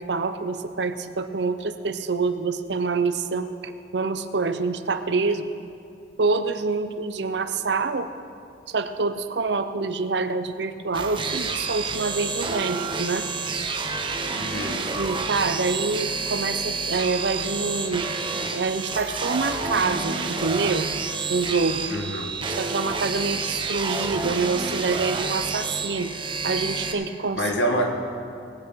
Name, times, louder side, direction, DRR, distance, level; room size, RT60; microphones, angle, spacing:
voice 1, 0.0-5.5 6.2-8.1 8.7-13.3 15.0-18.1 18.5-20.9 21.3-21.8 22.6-26.1 26.4-27.4, right 4 dB, 70° right, 10 dB, 0.7 m, -26 dB
sound 1, 10.9-26.9, right 4 dB, 30° right, 0.8 m, -29 dB
voice 2, 14.3-14.8 21.9-22.3 27.3-27.9, equal, 75° left, 2 dB, 1.7 m, -26 dB
19.0 x 8.7 x 5.7 m, 2.5 s
head